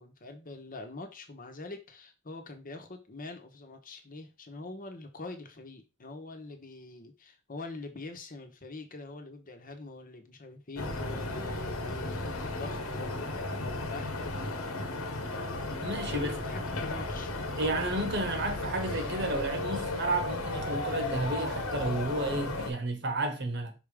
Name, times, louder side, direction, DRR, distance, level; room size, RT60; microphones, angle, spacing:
voice 1, 0.0-14.3 16.0-17.3, left 2 dB, 40° left, 1.1 m, -44 dB
sound 1, 10.8-22.7, left 2 dB, 85° left, 1.4 m, -34 dB
voice 2, 15.8-16.4 17.6-23.7, right 2 dB, 55° right, 1.3 m, -32 dB
5.7 x 3.6 x 4.9 m
head